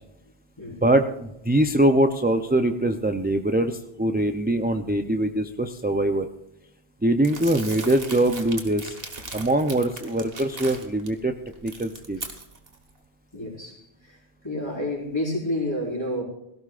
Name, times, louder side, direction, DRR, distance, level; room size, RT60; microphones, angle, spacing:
voice 1, 0.8-6.3 7.0-9.0 9.3-11.3 11.6-12.2, right 1 dB, 10° right, 6 dB, 0.5 m, -23 dB
Crumpling crinkling, 7.2-11.1 11.5-12.8, right 3 dB, 65° right, 1.9 m, -38 dB
voice 2, 13.3-14.2 14.4-16.2, left 1 dB, 25° left, -3 dB, 4.8 m, -29 dB
17.5 x 16.0 x 2.5 m, 0.87 s
omnidirectional pair, 1.1 m